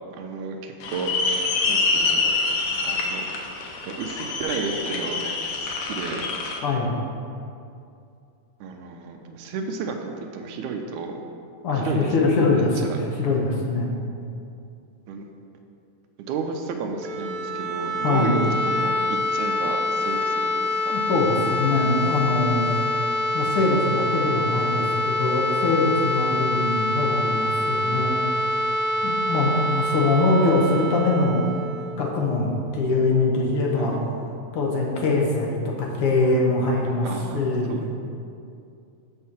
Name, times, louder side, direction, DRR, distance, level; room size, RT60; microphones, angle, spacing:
voice 1, 0.2-1.1 1.7-2.4 2.8-3.2 3.8-5.3 5.6-6.3 8.6-11.1 11.7-13.0 15.1-15.3 16.3-21.0 29.7-29.8 33.7-34.0 37.0-37.4 37.7-37.9, right 4 dB, 80° right, 4 dB, 1.9 m, -32 dB
sound 1, 0.8-6.6, left 3 dB, 85° left, 2.4 m, -26 dB
voice 2, 6.6-7.0 11.6-13.9 18.0-18.4 20.9-22.7 23.3-28.1 29.0-31.5 32.0-34.0 34.5-37.1 37.3-37.9, left 3 dB, 70° left, -2 dB, 1.3 m, -23 dB
sound 2, 16.9-32.7, left 1 dB, 45° right, 1.9 m, -26 dB
6.4 x 5.6 x 5.8 m, 2.5 s
omnidirectional pair, 3.7 m